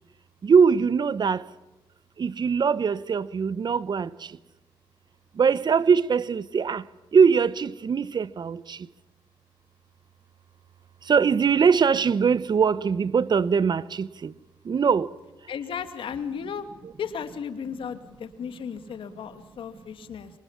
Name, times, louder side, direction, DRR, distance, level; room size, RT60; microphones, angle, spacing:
voice 1, 0.4-1.4 2.2-4.1 5.4-6.8 7.1-8.8 11.1-14.3 14.7-15.1, right 6 dB, 55° right, 1.0 m, -21 dB
voice 2, 15.5-16.6 17.0-20.3, left 7 dB, 75° left, 2.3 m, -35 dB
26.5 x 26.0 x 7.3 m
cardioid pair, 60°, 9 cm